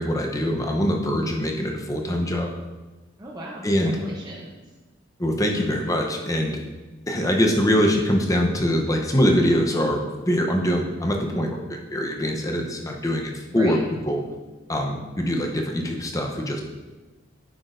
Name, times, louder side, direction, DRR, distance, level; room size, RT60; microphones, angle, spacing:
voice 1, 0.0-2.5 3.6-4.0 5.2-6.6 7.1-13.8 14.1-14.2 14.7-16.6, equal, 15° left, 1 dB, 0.7 m, -23 dB
voice 2, 3.2-4.5 13.5-13.8, right 1 dB, 20° right, -4 dB, 0.7 m, -37 dB
9.2 x 6.0 x 2.6 m, 1.2 s
head